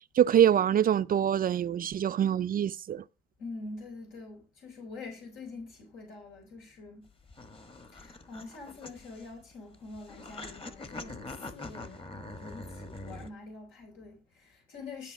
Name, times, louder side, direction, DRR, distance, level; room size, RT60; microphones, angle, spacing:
voice 1, 0.2-3.0, right 9 dB, 45° right, 0.4 m, -25 dB
voice 2, 3.4-7.1 7.9-15.1, left 3 dB, 85° left, 3.8 m, -45 dB
sound 1, 7.1-13.3, left 2 dB, 25° left, 1.3 m, -44 dB
12.0 x 5.5 x 6.1 m
cardioid pair, 90°, 20 cm